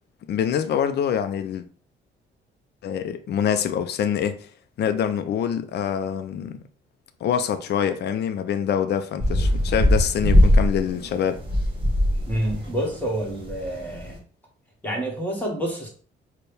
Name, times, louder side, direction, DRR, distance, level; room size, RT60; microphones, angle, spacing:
voice 1, 0.3-1.6 2.8-4.5 4.8-6.6 7.2-11.4, left 8 dB, 55° left, 0.4 m, -25 dB
sound 1, 9.2-14.2, equal, 25° right, 1.5 m, -21 dB
voice 2, 12.3-14.2 14.8-15.9, right 1 dB, 10° left, 1.5 m, -28 dB
4.3 x 2.2 x 3.3 m
cardioid pair, 90°, 20 cm